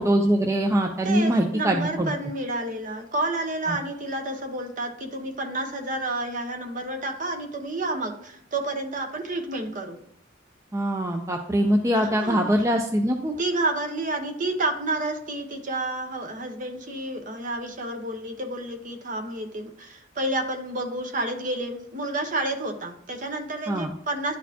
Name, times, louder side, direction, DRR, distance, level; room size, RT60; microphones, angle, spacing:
voice 1, 0.0-2.1 3.7-3.8 10.7-13.3 23.7-23.9, right 1 dB, 15° right, 3 dB, 0.4 m, -23 dB
voice 2, 1.0-10.0 11.9-12.5 13.4-24.4, right 2 dB, 45° right, 5 dB, 0.9 m, -30 dB
11.0 x 4.2 x 2.8 m, 0.75 s
head